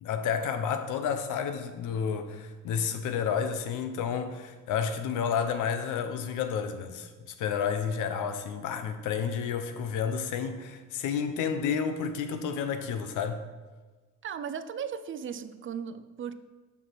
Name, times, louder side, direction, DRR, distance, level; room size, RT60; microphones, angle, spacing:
voice 1, 0.0-13.4, left 7 dB, 85° left, 8 dB, 0.7 m, -31 dB
voice 2, 14.2-16.3, right 7 dB, 40° right, 12 dB, 0.5 m, -36 dB
6.5 x 5.7 x 4.6 m, 1.3 s
cardioid pair, 90°, 30 cm